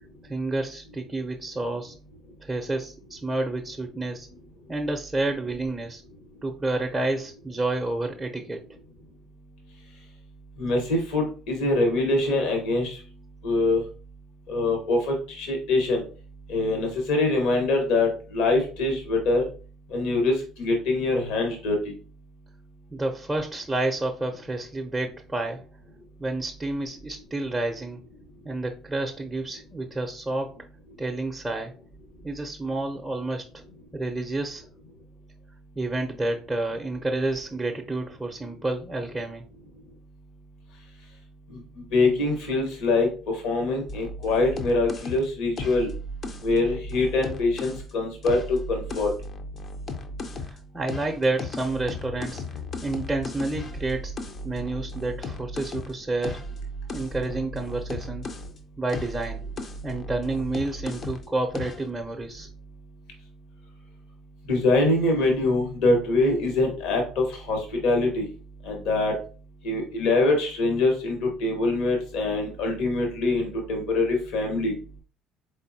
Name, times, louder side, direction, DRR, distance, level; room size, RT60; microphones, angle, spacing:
voice 1, 0.2-1.9 2.4-4.3 4.7-6.0 6.4-8.6 22.9-25.6 26.2-28.0 28.4-30.6 31.0-31.8 32.2-33.5 33.9-34.7 35.8-39.4 50.4-52.4 52.8-54.1 54.4-56.4 56.9-58.3 58.8-59.5 59.8-62.5, right 2 dB, 15° right, 1 dB, 0.6 m, -29 dB
voice 2, 10.6-13.0 13.4-13.8 14.5-16.0 16.5-19.5 19.9-21.9 41.5-41.6 41.9-45.9 46.4-49.1 64.5-68.3 68.6-69.2 69.6-74.7, left 2 dB, 70° left, 2 dB, 1.1 m, -24 dB
sound 1, 43.9-47.9 48.2-50.6 50.9-58.6 58.9-61.3 61.5-61.9, left 1 dB, 45° left, 0.6 m, -36 dB
4.0 x 3.6 x 2.7 m, 0.37 s
hypercardioid pair, 60°, 0 cm